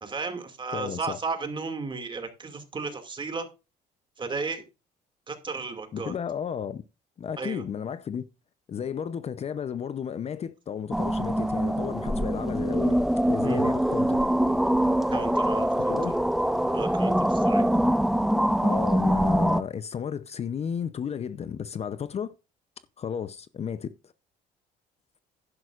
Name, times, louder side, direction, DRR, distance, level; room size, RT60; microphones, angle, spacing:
voice 1, 0.0-3.5 4.2-4.6 5.3-6.1 7.4-7.6 13.4-13.6 15.1-16.0 16.7-17.6, right 4 dB, 30° right, 2.3 m, -34 dB
voice 2, 0.7-1.2 5.9-6.8 7.2-8.3 8.7-13.0 13.3-14.2 15.8-16.1 18.6-22.3 23.0-24.1, left 7 dB, 40° left, 0.7 m, -33 dB
sound 1, 10.9-19.6, equal, ahead, 0.6 m, -24 dB
11.0 x 11.0 x 2.5 m
cardioid pair, 110°, 17 cm